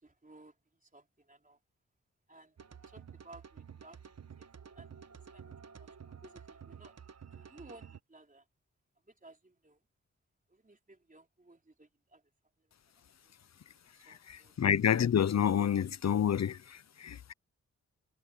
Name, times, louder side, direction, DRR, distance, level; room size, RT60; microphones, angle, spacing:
voice 1, 0.0-1.6 2.3-4.0 4.4-4.5 4.7-7.0 7.3-8.5 9.0-9.8 10.5-12.2 12.6-12.7 13.2-13.3 13.9-14.6, right 2 dB, 25° right, 4.1 m, -58 dB
sound 1, 2.6-8.0, right 7 dB, 60° right, 1.3 m, -51 dB
voice 2, 14.0-17.3, left 9 dB, 60° left, 0.7 m, -29 dB
cardioid pair, 65°, 30 cm